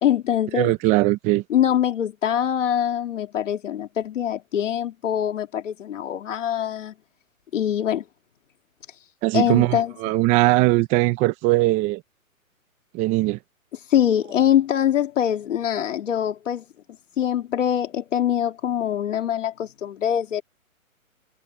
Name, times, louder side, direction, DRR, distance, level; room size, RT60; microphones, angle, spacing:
voice 1, 0.0-0.7 1.5-6.9 7.5-8.0 9.3-9.9 13.9-16.6 17.2-20.4, left 10 dB, 60° left, 2.4 m, -23 dB
voice 2, 0.5-1.4 9.2-12.0 12.9-13.4, right 20 dB, 15° right, 1.0 m, -20 dB
hypercardioid pair, 155°, 42 cm